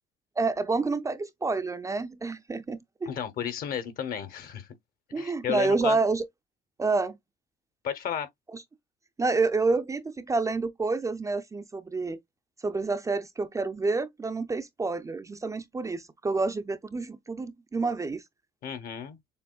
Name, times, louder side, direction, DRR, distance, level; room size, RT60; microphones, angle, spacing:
voice 1, 0.4-3.1 5.1-6.3 6.8-7.2 8.5-8.6 9.2-12.2 12.6-18.2, right 3 dB, 20° right, 0.4 m, -28 dB
voice 2, 3.1-4.7 5.2-6.0 7.8-8.3 18.6-19.2, left 8 dB, 60° left, 1.1 m, -33 dB
6.9 x 2.5 x 2.3 m
cardioid pair, 110°, 17 cm